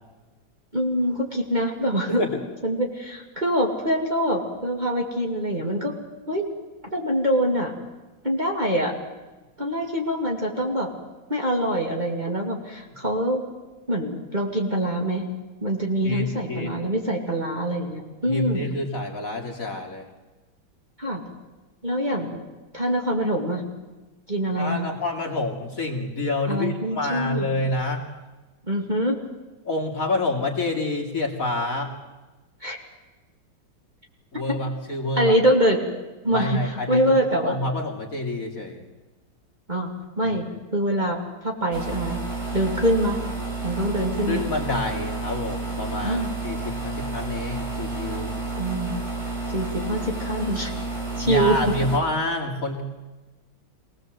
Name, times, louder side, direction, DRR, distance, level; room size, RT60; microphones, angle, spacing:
voice 1, 0.7-2.2 2.6-5.9 6.3-6.4 6.9-7.7 8.2-8.9 9.6-10.9 11.3-13.4 13.9-15.2 15.6-18.6 21.0-21.2 21.8-22.4 22.7-23.6 24.3-25.0 26.5-27.6 28.7-29.2 32.6-32.8 34.5-34.6 35.2-35.8 36.2-37.6 39.7-39.9 40.2-42.2 42.5-43.2 43.6-44.4 46.0-46.3 48.6-49.1 49.5-50.7 51.2-51.7, equal, 20° right, 0 dB, 2.6 m, -24 dB
voice 2, 2.1-2.4 12.9-13.0 16.0-16.8 18.2-20.1 24.6-28.1 29.6-31.9 34.3-35.4 36.3-38.8 40.2-40.4 44.3-48.3 51.2-52.8, left 2 dB, 45° left, 2 dB, 2.7 m, -28 dB
sound 1, 41.7-52.0, right 3 dB, 35° right, 4.7 m, -31 dB
24.5 x 18.0 x 7.9 m, 1.2 s
omnidirectional pair, 2.2 m